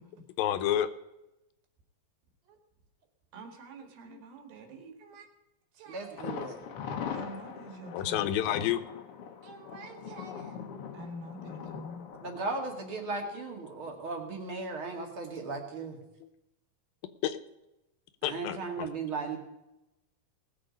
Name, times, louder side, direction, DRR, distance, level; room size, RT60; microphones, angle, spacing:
voice 1, 0.4-0.9 4.1-4.2 7.9-8.8 13.8-14.0 16.2-16.3 17.2-17.4 18.2-18.9, left 11 dB, 80° left, 11 dB, 2.5 m, -30 dB
voice 2, 3.3-5.3 5.8-6.3 6.7-6.8 7.1-8.3 9.4-10.6 10.9-12.1, right 1 dB, 80° right, 4 dB, 3.8 m, -46 dB
voice 3, 5.9-6.6 12.2-16.0 18.2-19.4, right 3 dB, 40° right, 2 dB, 2.4 m, -36 dB
Thunder, 6.2-13.9 14.2-14.3 14.8-14.9, left 7 dB, 65° left, 1.4 m, -42 dB
19.0 x 7.5 x 5.2 m, 0.94 s
omnidirectional pair, 4.2 m